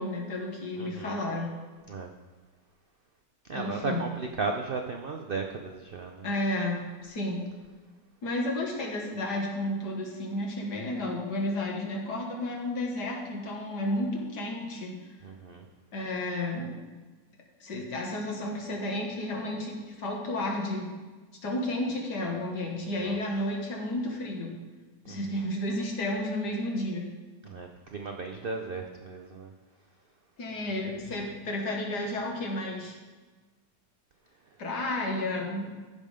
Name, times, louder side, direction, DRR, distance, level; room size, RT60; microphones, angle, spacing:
voice 1, 0.0-1.5 3.5-4.0 6.2-7.5 8.2-14.9 15.9-16.8 17.6-20.9 21.4-24.5 25.1-27.1 30.4-33.0 34.6-35.7, left 1 dB, 70° left, 0 dB, 2.2 m, -32 dB
voice 2, 0.8-1.2 1.8-2.1 3.5-6.3 15.2-15.7 23.0-23.2 25.0-25.5 27.4-29.5, right 4 dB, 80° right, 3 dB, 0.5 m, -36 dB
15.0 x 5.4 x 5.1 m, 1.3 s
omnidirectional pair, 1.9 m